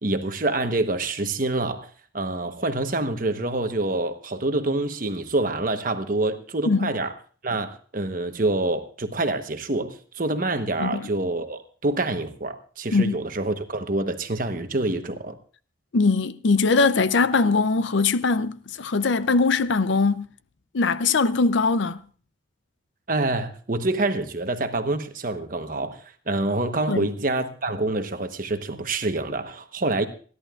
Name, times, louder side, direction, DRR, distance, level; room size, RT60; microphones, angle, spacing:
voice 1, 0.0-1.9 2.1-7.1 7.4-15.4 23.1-30.1, right 2 dB, 40° right, 1.1 m, -26 dB
voice 2, 15.9-20.3 20.7-22.0 26.9-27.1, left 4 dB, 65° left, 0.6 m, -21 dB
27.5 x 11.0 x 2.4 m
head